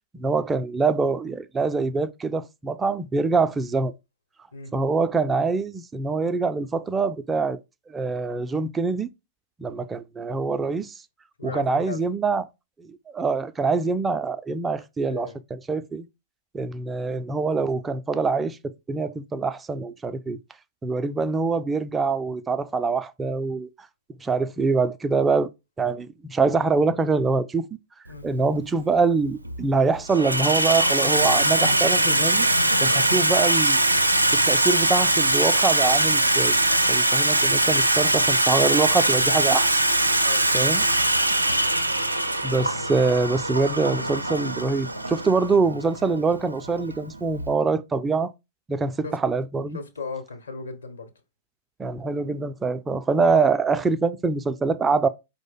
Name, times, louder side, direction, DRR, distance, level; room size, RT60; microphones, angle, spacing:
voice 1, 0.1-3.9 4.7-7.6 7.9-9.1 9.6-10.9 11.4-12.4 12.8-16.1 16.5-20.4 20.8-23.7 24.2-25.5 25.8-27.7 28.2-32.5 32.8-33.8 34.3-36.5 36.9-39.8 40.5-40.9 42.4-48.3 48.7-49.8 51.8-55.1, right 4 dB, 15° right, 0.3 m, -24 dB
voice 2, 11.4-12.0 15.0-15.4 28.1-28.3 40.2-41.0 49.0-49.2 49.7-51.1, left 4 dB, 70° left, 0.9 m, -37 dB
Water tap faucet / Sink (filling or washing), 28.2-28.3 29.2-29.6 29.9-47.5, right 1 dB, 85° right, 0.4 m, -22 dB
4.8 x 2.0 x 3.7 m
figure-of-eight pair, 100°, 0 cm